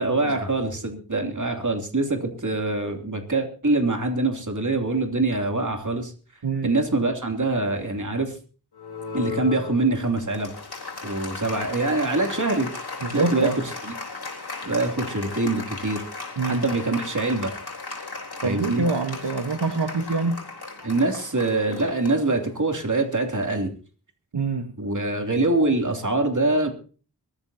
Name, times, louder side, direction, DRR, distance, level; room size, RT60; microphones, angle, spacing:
voice 1, 0.0-6.1 6.6-8.3 9.1-10.5 11.0-12.7 13.1-13.5 13.8-13.9 14.6-16.0 16.4-17.5 18.4-18.8 20.8-23.7 24.8-26.7, right 2 dB, 45° right, 3 dB, 3.0 m, -24 dB
voice 2, 6.4-6.8 13.0-13.5 16.4-16.7 18.4-20.4 24.3-24.7, right 3 dB, 85° right, 6 dB, 1.4 m, -25 dB
Applause, 8.7-22.8, left 4 dB, 70° left, 4.0 m, -36 dB
22.5 x 14.0 x 2.8 m, 0.37 s
wide cardioid pair, 65°, 40 cm